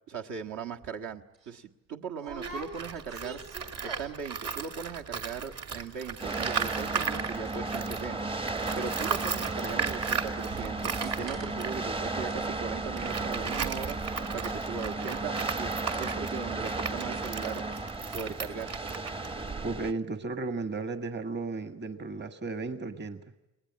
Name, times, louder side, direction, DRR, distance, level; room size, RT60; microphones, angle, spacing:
voice 1, 0.1-3.4 3.8-14.0 14.3-17.6 18.1-18.7, right 6 dB, 65° right, 2 dB, 1.7 m, -39 dB
sound 1, 0.8-1.0 1.3-1.5 2.2-4.3 4.6-5.0 5.3-5.4 5.6-5.9 6.2-8.5 8.8-17.8 18.1-18.5 18.8-18.9, right 4 dB, 85° right, 5.5 m, -46 dB
Tools, 2.3-8.1 8.4-19.9, right 6 dB, 50° right, 2.6 m, -36 dB
sound 2, 6.2-19.9, right 3 dB, 15° right, 0.8 m, -34 dB
voice 2, 19.6-23.2, right 3 dB, 35° right, 9 dB, 1.6 m, -34 dB
29.5 x 20.0 x 8.7 m, 1.0 s
cardioid pair, 130°, 32 cm